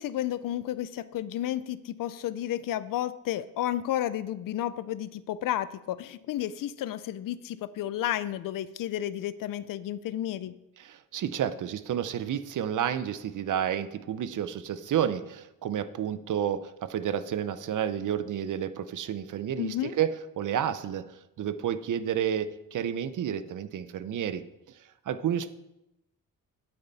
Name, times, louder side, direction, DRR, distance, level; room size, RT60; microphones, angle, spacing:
voice 1, 0.0-10.6 19.6-19.9, left 12 dB, 70° left, 16 dB, 0.5 m, -32 dB
voice 2, 10.8-24.4 25.1-25.5, right 9 dB, 60° right, 13 dB, 0.7 m, -30 dB
8.8 x 8.6 x 4.1 m, 0.90 s
cardioid pair, 120°, 34 cm